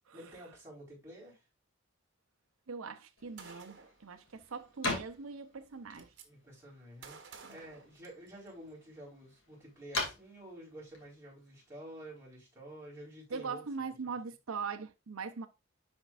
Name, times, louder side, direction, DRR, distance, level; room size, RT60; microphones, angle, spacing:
voice 1, 0.1-1.4 4.4-4.5 6.2-7.2 7.5-13.6, right 1 dB, 15° right, 4.1 m, -50 dB
voice 2, 2.7-6.1 7.4-7.6 13.3-15.5, right 5 dB, 85° right, 0.6 m, -41 dB
sound 1, 3.2-12.3, left 2 dB, 70° left, 2.3 m, -44 dB
Gunshot gunfire, 3.4-4.0 5.2-5.3 5.5-6.3 7.0-8.5, right 5 dB, 60° right, 1.3 m, -52 dB
10.5 x 4.4 x 2.4 m
head